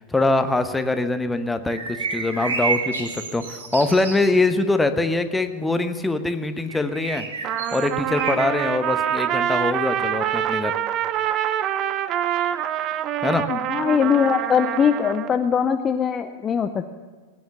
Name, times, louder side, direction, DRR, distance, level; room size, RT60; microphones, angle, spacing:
voice 1, 0.0-7.3 7.7-10.7 13.2-13.4, left 2 dB, 10° left, 9 dB, 1.0 m, -23 dB
sound 1, 1.7-4.3 6.7-8.7, right 4 dB, 65° right, 1.7 m, -30 dB
Trumpet, 7.4-15.3, right 10 dB, 35° right, 0.6 m, -25 dB
voice 2, 13.5-16.9, left 7 dB, 25° left, 8 dB, 0.6 m, -21 dB
18.0 x 9.5 x 7.2 m, 1.4 s
figure-of-eight pair, 90°, 0 cm